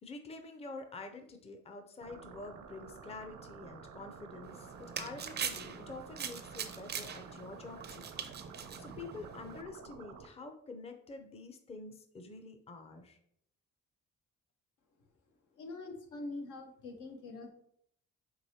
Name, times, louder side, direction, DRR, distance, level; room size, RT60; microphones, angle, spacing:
voice 1, 0.0-8.1 8.8-13.2, left 3 dB, 20° left, 6 dB, 0.5 m, -47 dB
sound 1, 2.0-10.3, right 6 dB, 80° right, 0.6 m, -51 dB
sound 2, 4.4-9.6, right 7 dB, 35° right, 0.4 m, -42 dB
voice 2, 15.6-17.5, left 2 dB, 80° left, 3 dB, 0.8 m, -44 dB
4.6 x 3.0 x 2.8 m, 0.69 s
cardioid pair, 90°, 30 cm